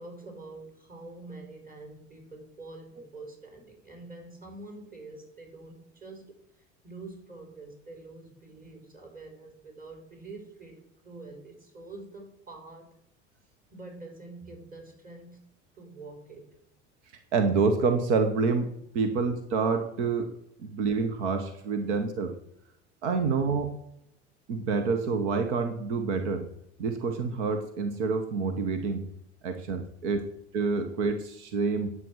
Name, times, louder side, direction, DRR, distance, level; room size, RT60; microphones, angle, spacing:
voice 1, 0.0-12.9 13.7-15.4 15.7-16.6 21.8-21.9, right 2 dB, 25° right, 1 dB, 5.2 m, -46 dB
voice 2, 17.3-20.3 20.6-22.3 23.0-23.7 24.5-26.5 26.8-29.1 29.4-30.3 30.5-31.9, right 4 dB, 80° right, 8 dB, 1.2 m, -27 dB
9.3 x 8.1 x 6.2 m, 0.76 s
hypercardioid pair, 75°, 34 cm